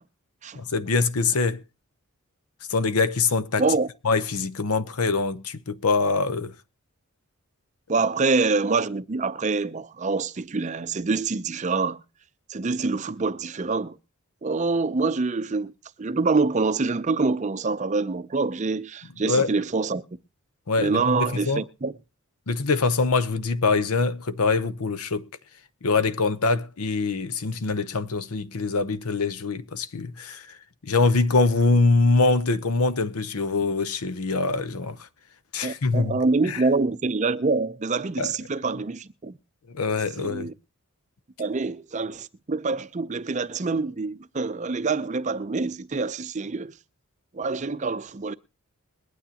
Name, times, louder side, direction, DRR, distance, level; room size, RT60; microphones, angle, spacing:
voice 1, 0.5-1.6 2.7-3.6 4.0-6.5 19.3-19.5 20.7-21.6 22.5-25.3 25.8-30.4 30.8-35.0 35.5-36.6 38.2-38.3 39.7-40.5, left 3 dB, 80° left, 0.8 m, -24 dB
voice 2, 3.6-3.9 7.9-12.0 12.5-14.0 14.4-15.7 16.0-20.0 20.8-21.9 35.6-39.4 40.2-40.5 41.4-46.7 47.3-48.3, right 3 dB, 30° right, 0.5 m, -26 dB
21.5 x 9.3 x 2.8 m
head